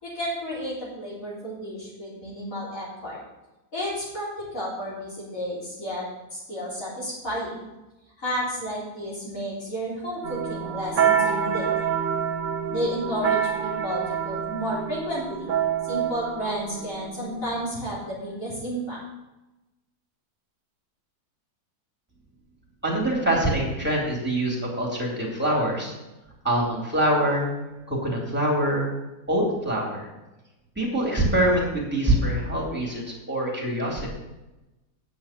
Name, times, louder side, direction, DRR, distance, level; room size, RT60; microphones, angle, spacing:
voice 1, 0.0-3.2 3.7-7.6 8.2-11.7 12.7-15.5 15.8-19.0, equal, 55° left, -7 dB, 4.0 m, -32 dB
sound 1, 10.2-17.7, right 8 dB, 60° right, 1.3 m, -27 dB
voice 2, 22.8-25.9 26.4-27.5 27.9-28.9 29.3-30.1 30.8-34.1, right 1 dB, 5° right, -3 dB, 3.0 m, -24 dB
8.7 x 7.1 x 7.3 m, 1.0 s
omnidirectional pair, 1.8 m